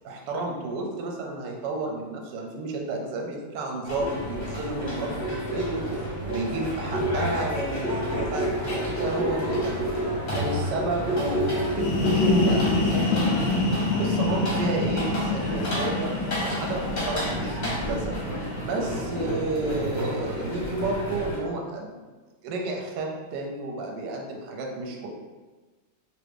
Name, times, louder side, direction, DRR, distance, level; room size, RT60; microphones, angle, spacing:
voice 1, 0.0-5.9 6.2-9.9 10.3-13.5 14.0-16.1 16.4-18.2 18.6-22.1 22.4-25.1, right 2 dB, 75° right, 0 dB, 1.1 m, -31 dB
sound 1, 3.8-21.4, equal, 40° left, 0.7 m, -29 dB
sound 2, 11.6-19.2, left 2 dB, 75° left, 1.0 m, -27 dB
3.0 x 2.5 x 3.3 m, 1.3 s
omnidirectional pair, 2.1 m